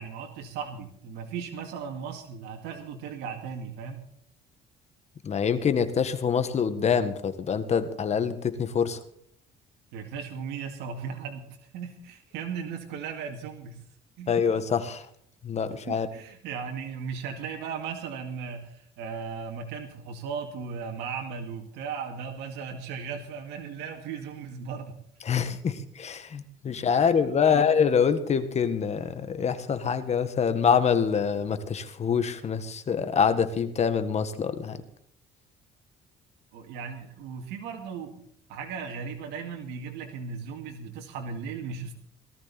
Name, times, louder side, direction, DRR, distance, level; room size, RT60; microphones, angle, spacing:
voice 1, 0.0-4.0 9.9-13.8 14.2-14.4 15.9-24.9 26.9-27.2 27.4-27.6 36.5-38.2 38.5-41.9, right 6 dB, 90° right, 2 dB, 2.2 m, -37 dB
voice 2, 5.2-9.0 14.3-15.0 15.4-16.1 25.2-34.8, left 7 dB, 40° left, 10 dB, 1.7 m, -25 dB
18.0 x 13.5 x 4.3 m, 0.65 s
cardioid pair, 110°, 17 cm